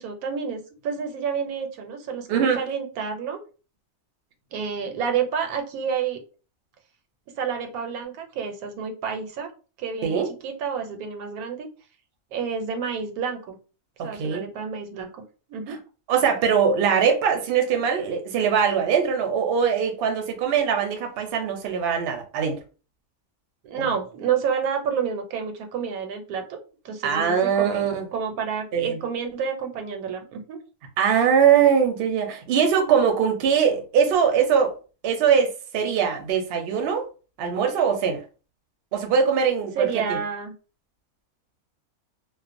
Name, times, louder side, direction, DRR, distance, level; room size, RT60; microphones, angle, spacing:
voice 1, 0.0-3.4 4.5-6.2 7.4-9.5 9.8-11.7 12.3-13.6 14.0-15.1 15.5-15.8 23.6-26.6 26.8-30.6 39.7-40.5, right 6 dB, 90° right, 4 dB, 1.1 m, -29 dB
voice 2, 14.0-14.5 16.1-22.6 27.0-28.0 28.7-29.0 31.0-34.7 35.0-37.1 37.4-38.2 38.9-40.2, right 7 dB, 60° right, 4 dB, 0.6 m, -22 dB
2.4 x 2.1 x 2.5 m, 0.35 s
omnidirectional pair, 1.5 m